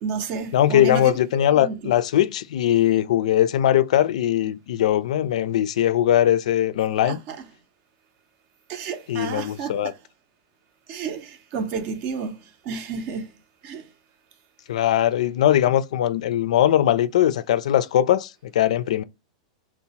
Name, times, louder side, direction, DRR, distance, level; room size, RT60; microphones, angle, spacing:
voice 1, 0.0-1.9 7.0-7.4 8.7-10.0 10.9-13.3 13.6-13.9, right 5 dB, 40° right, 0.5 m, -31 dB
voice 2, 0.5-7.2 9.1-9.9 14.7-19.0, left 11 dB, 75° left, 0.3 m, -20 dB
2.8 x 2.0 x 2.8 m
supercardioid pair, 145°, 4 cm